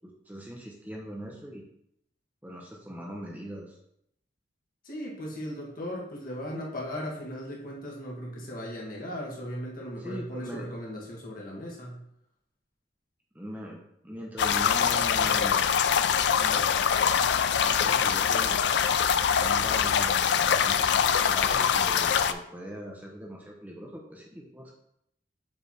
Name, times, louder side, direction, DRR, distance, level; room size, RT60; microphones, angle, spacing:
voice 1, 0.0-1.6 2.4-3.8 10.0-10.6 13.3-15.8 16.3-16.7 17.7-18.6 19.4-24.7, equal, 10° right, -1 dB, 0.7 m, -41 dB
voice 2, 4.8-12.0, equal, 50° left, -3 dB, 1.8 m, -37 dB
sound 1, 14.4-22.3, left 7 dB, 65° left, 0.4 m, -24 dB
7.0 x 3.4 x 4.3 m, 0.74 s
head